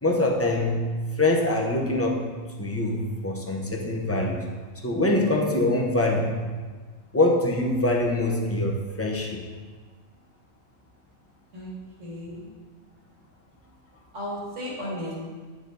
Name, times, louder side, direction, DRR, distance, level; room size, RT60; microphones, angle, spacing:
voice 1, 0.0-2.3 2.6-4.4 4.8-6.3 7.1-9.4, left 2 dB, 15° left, -1 dB, 0.8 m, -24 dB
voice 2, 12.0-12.4 14.1-15.1, left 1 dB, 70° right, -5 dB, 2.4 m, -34 dB
9.7 x 4.8 x 4.0 m, 1.4 s
omnidirectional pair, 1.3 m